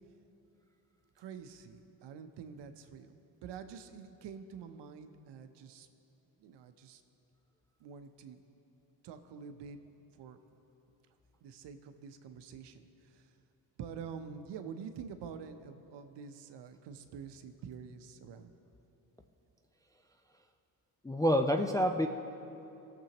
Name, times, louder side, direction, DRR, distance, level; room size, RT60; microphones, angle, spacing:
voice 1, 1.2-3.1 3.4-5.9 6.4-7.0 7.8-8.4 9.0-9.8 10.1-10.4 11.4-13.3 13.8-18.5, right 6 dB, 65° right, 8 dB, 0.8 m, -47 dB
voice 2, 21.0-22.1, equal, 10° left, 4 dB, 0.4 m, -27 dB
17.0 x 7.0 x 3.0 m, 3.0 s
supercardioid pair, 65°, 47 cm